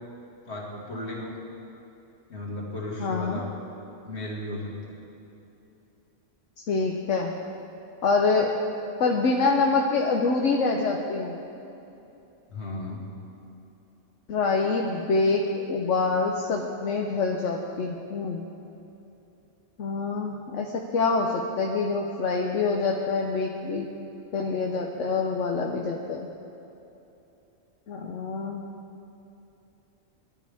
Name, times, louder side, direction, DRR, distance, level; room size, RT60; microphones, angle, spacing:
voice 1, 0.5-1.3 2.3-3.6 4.0-4.9 12.5-13.0, left 1 dB, 60° left, -2 dB, 2.4 m, -35 dB
voice 2, 3.0-3.4 6.7-7.3 8.0-8.5 9.0-11.4 14.3-18.5 19.8-23.9 24.3-26.3 27.9-28.6, left 4 dB, 75° left, 0 dB, 1.2 m, -26 dB
20.5 x 12.0 x 3.5 m, 2.9 s
omnidirectional pair, 1.3 m